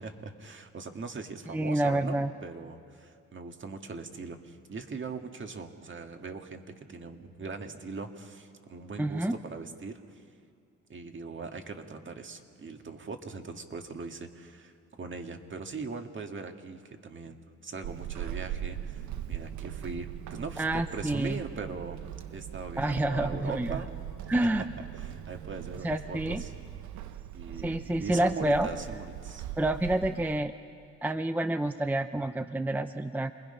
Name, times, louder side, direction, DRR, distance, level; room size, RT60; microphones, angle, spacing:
voice 1, 0.0-10.2 10.9-22.0 22.3-23.9 24.3-24.5 25.0-26.5 27.3-29.5, right 4 dB, 40° right, 5 dB, 1.8 m, -40 dB
voice 2, 1.5-2.3 9.0-9.4 20.6-21.4 22.8-23.8 24.3-24.6 25.8-26.4 27.6-28.7 29.6-30.5 31.0-33.3, right 1 dB, 5° right, 9 dB, 0.6 m, -28 dB
Walk footsteps / Squeak, 17.8-30.5, right 11 dB, 75° right, 0.8 m, -40 dB
27.5 x 20.5 x 5.6 m, 2.3 s
cardioid pair, 90°, 30 cm